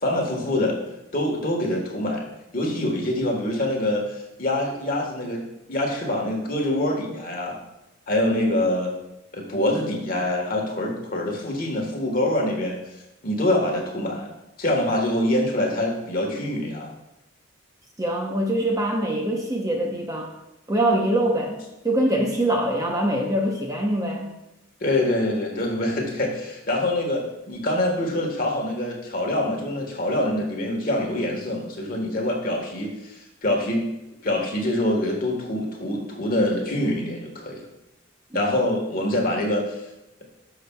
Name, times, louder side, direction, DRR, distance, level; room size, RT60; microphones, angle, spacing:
voice 1, 0.0-0.8 1.1-2.3 2.5-5.4 5.7-7.5 8.1-8.9 9.3-12.8 13.2-14.3 14.6-16.9 24.8-33.8 34.2-37.6 38.3-39.8, left 1 dB, 45° left, 0 dB, 1.4 m, -25 dB
voice 2, 18.0-20.3 20.7-24.4 38.3-38.4, right 1 dB, 15° right, 0 dB, 0.8 m, -24 dB
12.5 x 5.9 x 2.3 m, 0.92 s
head